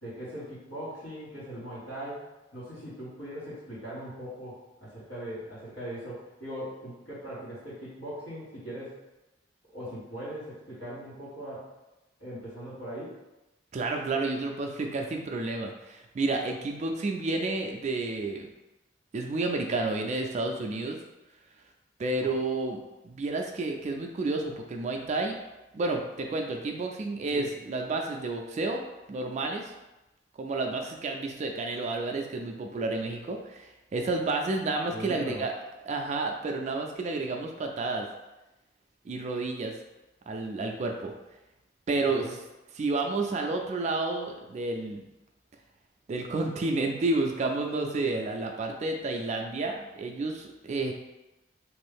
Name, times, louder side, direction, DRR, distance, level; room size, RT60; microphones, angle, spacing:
voice 1, 0.0-2.3 2.5-9.0 9.7-11.7 12.2-13.1 27.3-27.5 34.9-35.4 42.2-42.4, equal, 90° left, -10 dB, 1.5 m, -40 dB
voice 2, 13.7-18.5 19.1-21.0 22.0-25.4 25.7-28.8 29.1-29.7 30.4-35.5 35.9-38.1 39.1-39.7 40.3-41.1 41.9-42.3 42.8-45.0 46.1-50.9, right 2 dB, 40° right, 3 dB, 0.3 m, -30 dB
3.0 x 2.6 x 3.5 m, 1.0 s
head